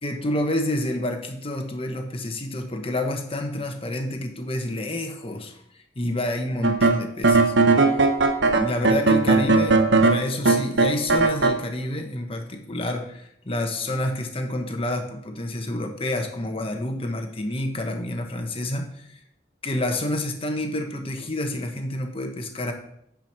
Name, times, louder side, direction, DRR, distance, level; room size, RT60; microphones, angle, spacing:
voice 1, 0.0-7.5 7.8-8.1 8.5-19.2 19.6-22.7, left 1 dB, 30° left, 4 dB, 1.2 m, -29 dB
sound 1, 6.6-11.6, right 3 dB, 85° right, 0.9 m, -18 dB
9.2 x 5.1 x 6.0 m, 0.73 s
head